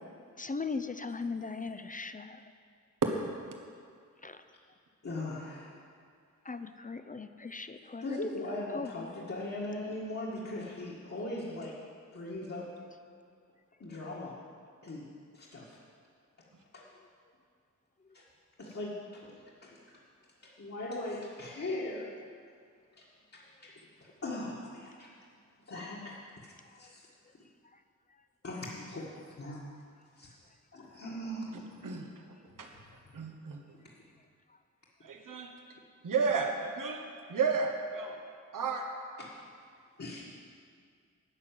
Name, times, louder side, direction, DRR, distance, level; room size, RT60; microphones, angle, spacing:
voice 1, 0.4-2.4 4.2-4.4 6.4-8.2 8.7-9.1 26.7-26.9 27.7-27.8, left 4 dB, 25° left, 10 dB, 0.5 m, -39 dB
voice 2, 5.0-5.8 8.0-11.7 12.1-12.7 13.8-14.4 14.8-15.1 15.3-15.8 16.7-16.8 18.1-18.2 18.6-20.0 20.4-22.1 22.9-23.0 23.3-23.7 24.0-25.1 25.7-26.2 26.8-27.1 28.4-29.6 30.2-30.3 30.7-31.5 33.0-33.1 33.8-33.9 39.2-39.3 40.0-40.2, left 1 dB, 50° left, -6 dB, 1.9 m, -39 dB
voice 3, 33.1-33.6 35.0-35.5 36.0-37.0 37.3-38.2 38.5-38.8, right 5 dB, 85° right, 3 dB, 1.2 m, -31 dB
11.0 x 6.4 x 9.1 m, 2.2 s
wide cardioid pair, 95°, 31 cm